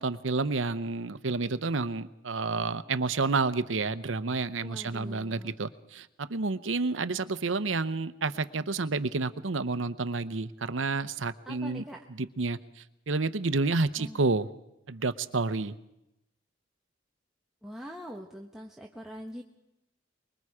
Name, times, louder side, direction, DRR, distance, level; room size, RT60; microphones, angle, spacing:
voice 1, 0.0-11.8 12.2-12.6 13.1-14.5 14.9-15.7, right 3 dB, 90° right, 13 dB, 0.9 m, -30 dB
voice 2, 4.6-5.6 11.4-12.0 14.0-14.2 17.6-19.4, equal, 5° right, -1 dB, 1.2 m, -43 dB
24.5 x 22.5 x 4.9 m, 0.88 s
head